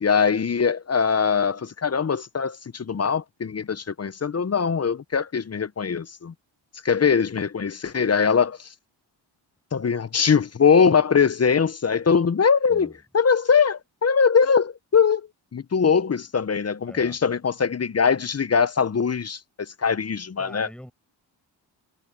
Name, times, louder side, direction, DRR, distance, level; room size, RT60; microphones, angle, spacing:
voice 1, 0.0-6.3 6.8-8.7 9.7-20.7, left 6 dB, 35° left, 0.8 m, -22 dB
voice 2, 16.9-17.2 20.4-20.9, equal, ahead, 7.9 m, -43 dB
cardioid pair, 60°, 46 cm